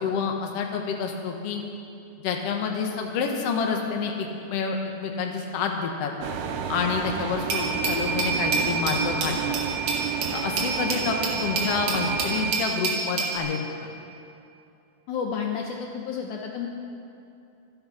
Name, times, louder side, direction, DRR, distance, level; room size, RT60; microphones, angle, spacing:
voice 1, 0.0-1.6 2.2-6.1 6.7-9.5 10.3-13.6, left 5 dB, 65° left, 2 dB, 1.5 m, -28 dB
sound 1, 6.2-12.5, right 7 dB, 80° right, 2.9 m, -31 dB
Glass, 7.5-13.4, right 4 dB, 50° right, 2.9 m, -28 dB
voice 2, 15.1-16.7, left 6 dB, 85° left, 1 dB, 1.7 m, -31 dB
26.0 x 8.9 x 5.6 m, 2.7 s
omnidirectional pair, 4.8 m